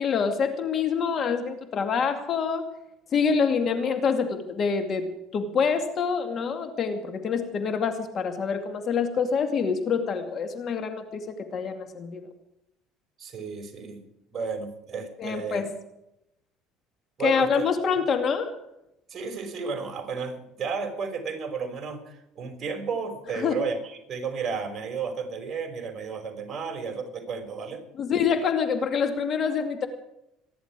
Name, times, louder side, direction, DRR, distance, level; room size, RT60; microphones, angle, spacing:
voice 1, 0.0-2.6 3.1-5.1 5.3-12.2 15.2-15.7 17.2-18.5 23.4-23.6 28.0-29.9, left 6 dB, 45° left, 7 dB, 2.4 m, -26 dB
voice 2, 13.2-14.0 14.3-15.6 17.2-17.6 19.1-27.8, right 5 dB, 35° right, 4 dB, 5.5 m, -33 dB
26.0 x 11.0 x 4.9 m, 0.83 s
supercardioid pair, 100°, 0 cm